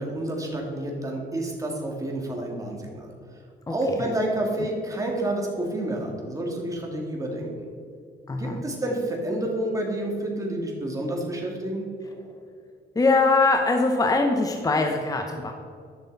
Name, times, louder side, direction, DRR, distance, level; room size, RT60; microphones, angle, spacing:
voice 1, 0.0-3.1 3.7-7.5 8.4-11.9, right 1 dB, 15° right, -1 dB, 2.2 m, -29 dB
voice 2, 8.3-8.6 12.9-15.5, left 3 dB, 20° left, 4 dB, 0.8 m, -22 dB
11.0 x 6.3 x 4.1 m, 2.2 s
cardioid pair, 90°, 20 cm